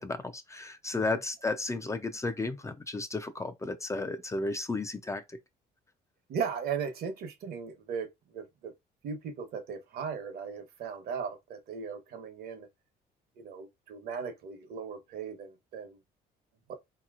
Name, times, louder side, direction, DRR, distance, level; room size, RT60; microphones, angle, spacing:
voice 1, 0.0-5.4, left 3 dB, 15° left, 0.4 m, -33 dB
voice 2, 6.3-8.7 9.0-12.7 13.4-16.0 16.7-16.8, right 6 dB, 65° right, 1.0 m, -37 dB
4.0 x 2.9 x 2.4 m
cardioid pair, 110°, 17 cm